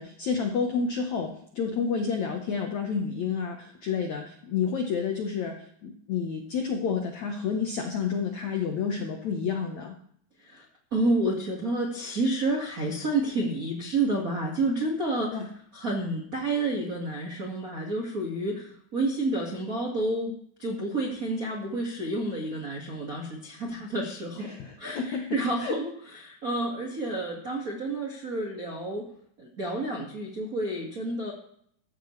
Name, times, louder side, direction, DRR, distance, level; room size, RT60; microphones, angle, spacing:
voice 1, 0.0-10.0 15.3-15.5 24.4-25.7, left 6 dB, 75° left, 3 dB, 1.6 m, -30 dB
voice 2, 10.9-15.4 15.7-20.3 20.6-24.5 24.8-29.1 29.4-31.3, right 2 dB, 60° right, -2 dB, 0.9 m, -29 dB
14.5 x 14.5 x 3.2 m, 0.66 s
omnidirectional pair, 4.9 m